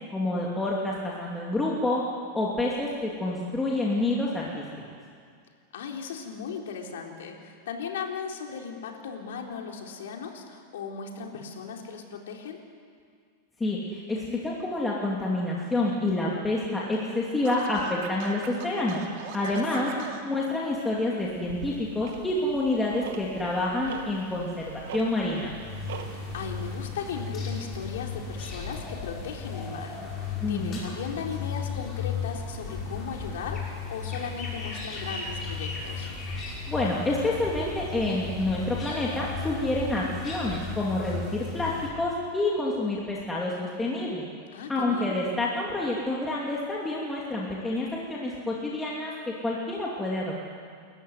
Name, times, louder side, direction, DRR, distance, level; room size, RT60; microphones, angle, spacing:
voice 1, 0.1-2.0 2.3-4.6 13.6-19.0 19.3-19.9 20.2-25.5 30.4-30.8 36.7-44.2 44.7-50.4, left 2 dB, 10° left, -4 dB, 2.8 m, -28 dB
voice 2, 5.7-12.6 19.4-20.2 26.3-30.0 30.2-36.1 44.5-45.3, left 6 dB, 85° left, 1 dB, 3.9 m, -37 dB
Scratching (performance technique), 17.4-20.2, right 9 dB, 50° right, 2.8 m, -40 dB
Tick-tock, 21.2-26.8, right 6 dB, 80° right, 2.5 m, -43 dB
sound 1, 25.6-41.9, left 5 dB, 25° left, 5.9 m, -35 dB
29.0 x 14.5 x 9.8 m, 2.1 s
supercardioid pair, 150°, 0 cm